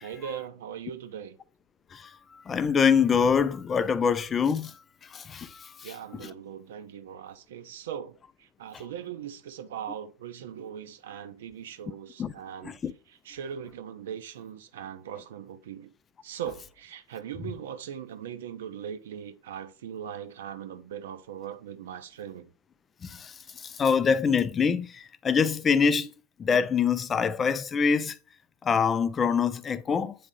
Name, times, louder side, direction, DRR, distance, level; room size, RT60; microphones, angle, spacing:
voice 1, 0.0-1.4 5.8-12.8 13.2-15.9 16.2-22.5, right 9 dB, 60° right, 0.7 m, -40 dB
voice 2, 2.5-4.7 5.1-5.9 6.2-6.3 12.2-12.3 12.6-12.9 23.0-26.1 26.4-28.2 28.6-30.1, left 6 dB, 20° left, 0.4 m, -25 dB
8.5 x 3.6 x 3.8 m
figure-of-eight pair, 90°, 0 cm